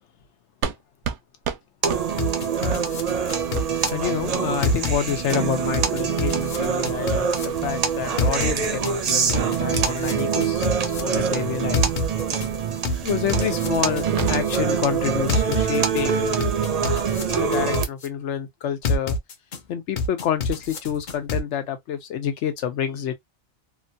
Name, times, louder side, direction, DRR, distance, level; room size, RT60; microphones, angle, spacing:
sound 1, 0.6-0.8 1.0-1.2 1.4-1.6 1.9-2.0 2.7-2.8 3.6-3.7 4.6-5.0 5.5-5.9 6.4-6.7 7.5-7.7 8.6-8.7 9.1-9.2 9.8-9.9 11.1-11.3 12.3-12.4 13.4-13.5 13.9-14.7 15.8-16.3, right 8 dB, 85° right, 0.9 m, -32 dB
sound 2, 1.8-17.8, right 6 dB, 45° right, 0.5 m, -25 dB
sound 3, 2.2-3.9 4.6-5.4 5.7-7.4 8.2-8.9 9.3-11.0 11.7-12.5 12.8-14.6 15.3-16.0 16.4-18.1 18.8-19.6 20.0-21.4, left 2 dB, 50° left, 0.6 m, -26 dB
voice 1, 3.9-10.7 11.0-11.9 13.0-16.3 17.3-19.2 19.7-23.1, left 9 dB, 90° left, 1.0 m, -28 dB
2.9 x 2.2 x 2.5 m
omnidirectional pair, 1.2 m